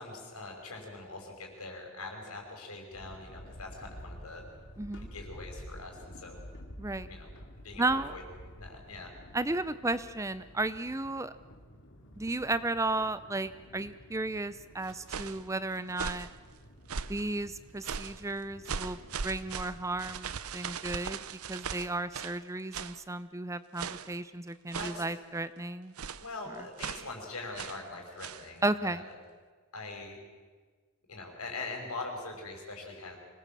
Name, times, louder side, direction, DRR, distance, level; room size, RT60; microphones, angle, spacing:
voice 1, 0.0-4.4 5.1-6.4 7.1-7.3 7.6-8.2 8.6-9.1 24.8-25.0 26.2-29.1 29.7-30.2 31.1-33.2, left 3 dB, 80° left, 2 dB, 5.7 m, -42 dB
sound 1, 2.9-20.1, equal, 55° left, 2.7 m, -51 dB
voice 2, 4.8-5.1 6.8-7.1 7.8-8.1 9.3-11.3 12.2-16.3 17.1-19.0 19.2-21.2 21.5-25.9 28.6-29.1, right 2 dB, 15° right, 14 dB, 0.6 m, -33 dB
sound 2, 14.8-15.4 15.9-16.3 16.9-17.3 17.8-18.2 18.7-22.4 22.7-23.0 23.8-24.2 24.7-25.1 26.0-26.3 26.8-27.1 27.6-27.8 28.2-28.5, right 6 dB, 75° right, 0.8 m, -39 dB
25.0 x 19.0 x 7.5 m, 1.5 s
head